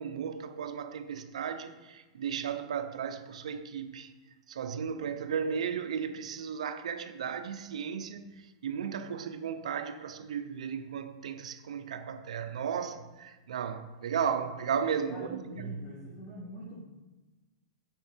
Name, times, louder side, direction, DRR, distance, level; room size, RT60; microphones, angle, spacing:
voice 1, 0.0-4.1 4.5-8.3 8.6-15.9, right 7 dB, 85° right, 0.8 m, -35 dB
voice 2, 15.1-16.9, equal, 40° left, 3.0 m, -44 dB
9.0 x 5.9 x 4.5 m
hypercardioid pair, 140°, 3 cm